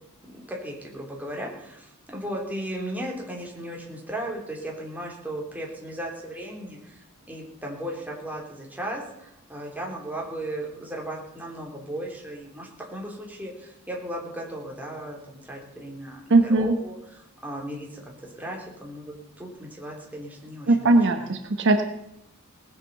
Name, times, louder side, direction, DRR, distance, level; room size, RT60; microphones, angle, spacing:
voice 1, 0.2-18.0 18.4-21.3, right 1 dB, 5° right, -2 dB, 3.4 m, -36 dB
voice 2, 16.3-16.8 20.7-21.8, right 2 dB, 55° right, 6 dB, 1.1 m, -19 dB
19.0 x 8.4 x 6.7 m, 0.81 s
head